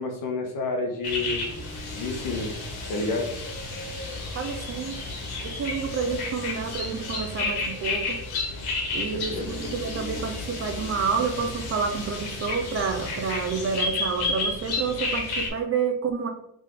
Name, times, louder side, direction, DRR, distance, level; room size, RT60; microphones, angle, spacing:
voice 1, 0.0-1.4 1.9-2.5 2.9-3.3 8.9-9.6, left 3 dB, 60° left, 3 dB, 1.2 m, -30 dB
sound 1, 1.0-15.5, left 3 dB, 90° left, 1.5 m, -32 dB
voice 2, 4.3-5.0 5.4-8.2 8.9-16.3, right 5 dB, 40° right, 6 dB, 0.6 m, -29 dB
3.7 x 3.6 x 3.6 m, 0.74 s
cardioid pair, 170°, 37 cm